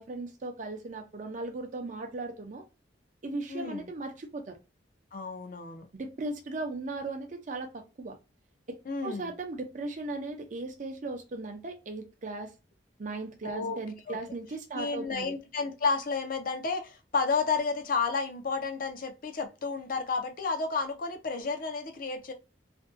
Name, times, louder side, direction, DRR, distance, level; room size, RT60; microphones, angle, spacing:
voice 1, 0.0-2.6 3.2-4.6 5.9-8.2 8.7-8.8 9.0-12.5 13.0-15.3, right 2 dB, 45° right, 0.5 m, -37 dB
voice 2, 3.5-3.9 5.1-5.9 8.9-9.3 13.4-13.8 14.1-14.2 14.7-22.3, left 4 dB, 50° left, 0.5 m, -31 dB
2.5 x 2.2 x 2.4 m
head